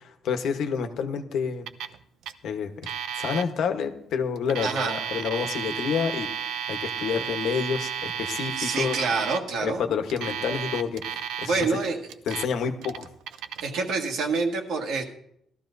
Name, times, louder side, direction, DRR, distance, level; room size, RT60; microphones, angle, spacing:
voice 1, 0.0-1.7 2.4-2.9 3.2-9.0 9.6-11.8 12.3-13.1, left 6 dB, 65° left, 7 dB, 1.1 m, -29 dB
Alarm, 1.7-2.0 2.2-2.3 2.8-3.4 4.4-9.4 10.1-11.6 12.1-12.5 12.8-13.6, right 8 dB, 85° right, 0.6 m, -33 dB
voice 2, 4.6-5.0 8.6-9.8 11.5-12.1 13.6-15.0, right 4 dB, 65° right, 2 dB, 1.8 m, -27 dB
19.0 x 13.5 x 2.7 m, 0.73 s
cardioid pair, 170°, 0 cm